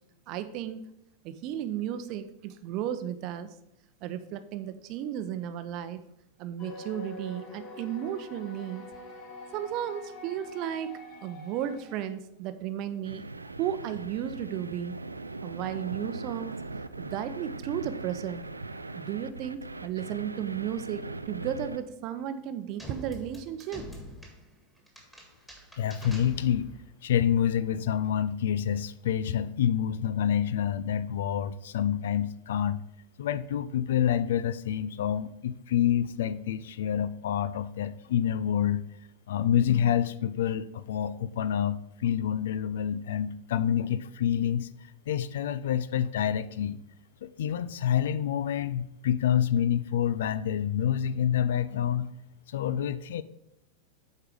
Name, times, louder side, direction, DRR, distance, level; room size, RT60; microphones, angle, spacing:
voice 1, 0.3-0.8 1.2-3.5 4.0-6.0 6.4-8.8 9.5-10.9 11.2-13.2 13.6-15.0 15.4-16.5 17.0-18.4 18.9-23.8, right 10 dB, 40° right, 11 dB, 0.6 m, -34 dB
sound 1, 6.6-12.1, left 2 dB, 35° left, 1.2 m, -45 dB
sound 2, 13.0-21.8, right 3 dB, 80° right, 0.3 m, -40 dB
sound 3, 22.8-26.9, equal, 5° left, 1.8 m, -46 dB
voice 2, 25.8-26.7 27.0-32.8 33.2-38.8 39.3-44.7 45.1-46.8 47.2-52.1 52.5-53.2, left 9 dB, 60° left, 16 dB, 0.3 m, -27 dB
8.0 x 4.6 x 5.1 m, 0.81 s
figure-of-eight pair, 90°, 0 cm